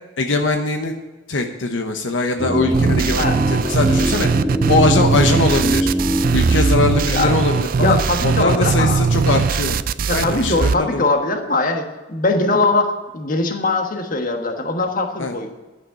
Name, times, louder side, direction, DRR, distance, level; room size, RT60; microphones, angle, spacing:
voice 1, 0.2-0.9 1.3-4.3 4.7-5.9 6.3-9.8 10.1-11.0 15.2-15.4, left 3 dB, 80° left, 5 dB, 0.9 m, -21 dB
sound 1, 2.4-8.4 8.7-8.8, right 1 dB, 5° left, 1.5 m, -23 dB
sound 2, 2.7-10.7, right 5 dB, 50° right, 0.4 m, -19 dB
voice 2, 7.8-9.0 10.1-15.5, left 3 dB, 45° left, 4 dB, 1.4 m, -21 dB
11.5 x 6.5 x 8.7 m, 1.2 s
head